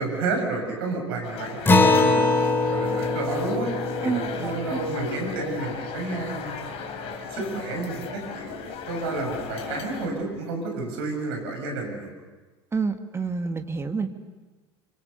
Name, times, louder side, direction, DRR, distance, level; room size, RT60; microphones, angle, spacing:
voice 1, 0.0-3.7 4.0-6.6 6.9-8.6 8.9-12.1, right 3 dB, 65° right, 2 dB, 7.0 m, -31 dB
sound 1, 1.2-10.1, left 6 dB, 45° left, 3.2 m, -36 dB
Acoustic guitar, 1.7-6.5, left 3 dB, 15° left, 2.5 m, -24 dB
voice 2, 4.0-4.8 12.7-14.1, right 4 dB, 20° right, 7 dB, 1.7 m, -28 dB
26.0 x 25.5 x 6.8 m, 1.3 s
figure-of-eight pair, 75°, 14 cm